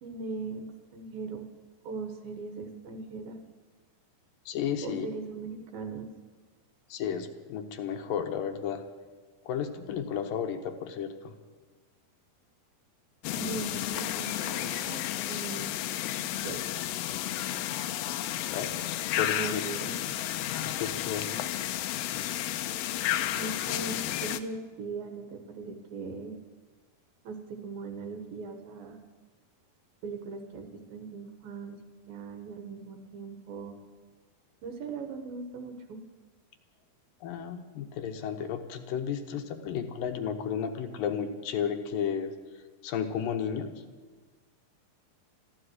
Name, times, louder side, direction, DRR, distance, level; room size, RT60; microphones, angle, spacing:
voice 1, 0.0-1.5 1.8-3.4 4.8-6.1 13.3-15.7 16.2-16.6 19.3-20.0 23.3-24.0 24.2-26.4 27.2-29.0 30.0-31.8 32.1-33.7 34.6-36.0, right 4 dB, 65° right, 4 dB, 2.8 m, -39 dB
voice 2, 4.5-5.1 6.9-8.8 9.5-11.3 18.4-18.9 19.2-19.6 20.6-21.3 37.2-42.3 42.8-43.7, left 8 dB, 70° left, 6 dB, 2.3 m, -33 dB
sound 1, 13.2-24.4, left 13 dB, 90° left, 2.8 m, -32 dB
14.0 x 13.0 x 7.9 m, 1.3 s
omnidirectional pair, 4.8 m